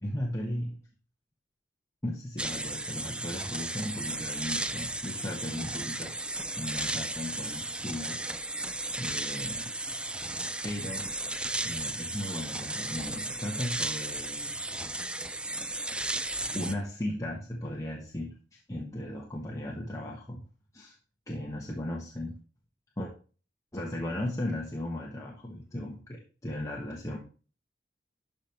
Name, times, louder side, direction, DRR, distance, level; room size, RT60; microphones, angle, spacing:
voice 1, 0.0-0.8 2.0-6.2 6.6-8.2 9.0-9.7 10.6-11.1 11.6-14.5 16.5-20.4 20.7-21.0 21.3-22.4 23.0-23.1 23.7-27.2, left 1 dB, 20° left, -2 dB, 1.3 m, -36 dB
sound 1, 2.4-16.7, right 2 dB, 5° right, 0.4 m, -35 dB
12.5 x 5.1 x 3.0 m, 0.36 s
head